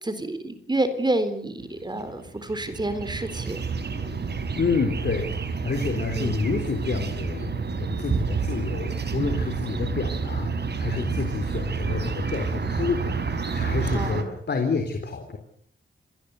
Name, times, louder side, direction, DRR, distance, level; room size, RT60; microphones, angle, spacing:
voice 1, 0.0-3.6 6.2-6.4 13.9-14.3, right 1 dB, 20° right, 10 dB, 3.9 m, -28 dB
sound 1, 1.6-14.2, right 5 dB, 60° right, 4.4 m, -29 dB
voice 2, 4.5-15.4, left 4 dB, 60° left, 5 dB, 3.8 m, -29 dB
26.5 x 19.0 x 8.2 m, 0.69 s
wide cardioid pair, 110°, 20 cm